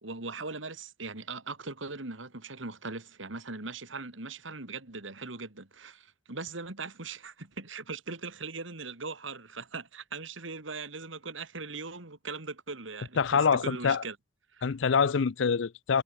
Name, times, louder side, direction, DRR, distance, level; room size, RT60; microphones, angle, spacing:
voice 1, 0.0-14.2 14.5-14.6, right 4 dB, 80° right, 2.8 m, -40 dB
voice 2, 13.2-14.0 14.6-16.0, left 6 dB, 70° left, 0.5 m, -25 dB
head